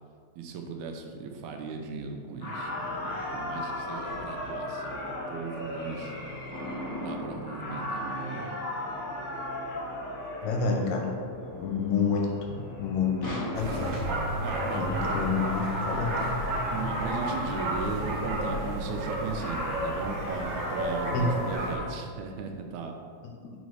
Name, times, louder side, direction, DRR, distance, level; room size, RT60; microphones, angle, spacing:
voice 1, 0.4-6.2 7.0-8.6 14.4-14.9 16.2-16.3 16.7-23.0, right 5 dB, 85° right, 3 dB, 2.0 m, -37 dB
sound 1, 2.4-21.8, left 1 dB, 35° left, 1.6 m, -37 dB
sound 2, 2.6-17.0, left 2 dB, 60° left, 0.7 m, -46 dB
voice 2, 10.4-11.2 11.4-13.9 14.7-16.3 21.1-21.2, left 5 dB, 80° left, 0 dB, 2.1 m, -29 dB
sound 3, 13.5-21.8, right 1 dB, 65° right, 1.7 m, -32 dB
4.8 x 4.1 x 4.7 m, 2.1 s
omnidirectional pair, 3.3 m